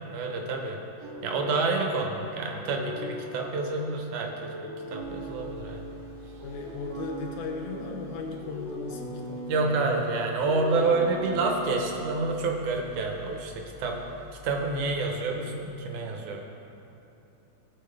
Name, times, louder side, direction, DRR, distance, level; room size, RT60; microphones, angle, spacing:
voice 1, 0.1-0.8 1.2-5.9 9.5-14.1 14.4-16.4, right 3 dB, 80° right, 1 dB, 2.5 m, -28 dB
sound 1, 1.0-12.7, equal, 45° right, 2.2 m, -40 dB
sound 2, 5.0-15.0, left 4 dB, 30° right, 1.7 m, -51 dB
voice 2, 6.4-9.9, left 4 dB, 75° left, 1 dB, 2.3 m, -37 dB
18.5 x 6.3 x 3.4 m, 2.9 s
omnidirectional pair, 3.4 m